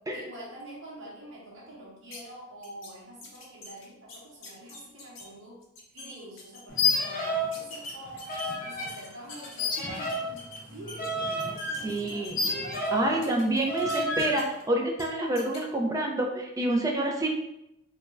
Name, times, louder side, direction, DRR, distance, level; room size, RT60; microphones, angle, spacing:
voice 1, 0.1-5.6 5.9-10.4 10.7-13.4, right 1 dB, 75° right, -5 dB, 0.8 m, -46 dB
sound 1, 2.1-2.2 2.6-2.9 3.2-5.2 5.6-6.1 6.4-6.8 7.5-9.6 9.9-11.1 11.4-12.9 13.2-14.6 14.9-15.0 15.4-15.6, left 3 dB, 85° left, 0.6 m, -44 dB
sound 2, 6.7-7.6 7.8-8.9 9.6-13.2 13.7-14.4, left 2 dB, 45° left, 0.6 m, -30 dB
voice 2, 11.8-12.4 12.9-17.3, right 1 dB, 15° right, 0 dB, 0.3 m, -28 dB
2.4 x 2.1 x 3.1 m, 0.87 s
head